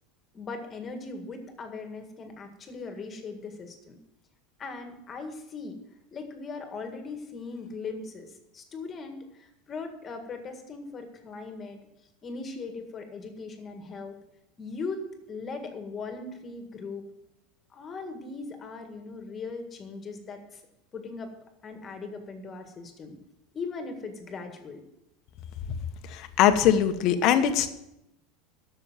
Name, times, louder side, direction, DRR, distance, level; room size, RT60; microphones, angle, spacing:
voice 1, 0.3-4.0 4.6-5.8 6.1-11.8 12.2-14.2 14.6-15.0 15.3-17.1 17.7-20.6 20.9-21.3 21.6-23.2 23.5-24.8, left 4 dB, 25° left, 6 dB, 1.8 m, -39 dB
voice 2, 26.1-27.7, left 9 dB, 50° left, 9 dB, 1.1 m, -22 dB
12.0 x 7.0 x 7.3 m, 0.87 s
supercardioid pair, 150°, 0 cm